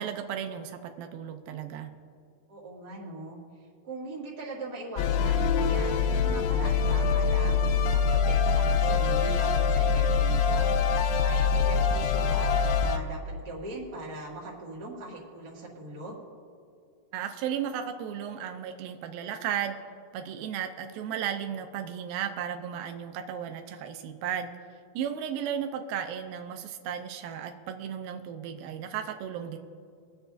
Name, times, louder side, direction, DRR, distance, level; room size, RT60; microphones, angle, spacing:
voice 1, 0.0-1.9 17.1-19.8 20.1-24.5 24.9-29.6, right 9 dB, 85° right, 6 dB, 2.5 m, -34 dB
voice 2, 2.5-3.4 3.8-10.7 11.2-16.2, right 2 dB, 35° right, -5 dB, 2.1 m, -40 dB
sound 1, 5.0-13.0, left 6 dB, 80° left, 2.3 m, -24 dB
23.0 x 8.0 x 2.6 m, 2.3 s
omnidirectional pair, 4.1 m